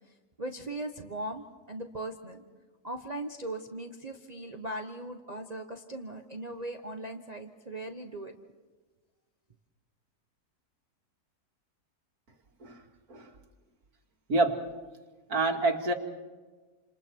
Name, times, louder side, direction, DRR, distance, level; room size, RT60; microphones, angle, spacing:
voice 1, 0.4-2.4 2.8-8.4, right 1 dB, 25° right, 5 dB, 1.2 m, -39 dB
voice 2, 14.3-14.6 15.3-15.9, right 3 dB, 65° right, 4 dB, 2.5 m, -27 dB
29.5 x 27.5 x 4.7 m, 1.3 s
omnidirectional pair, 1.7 m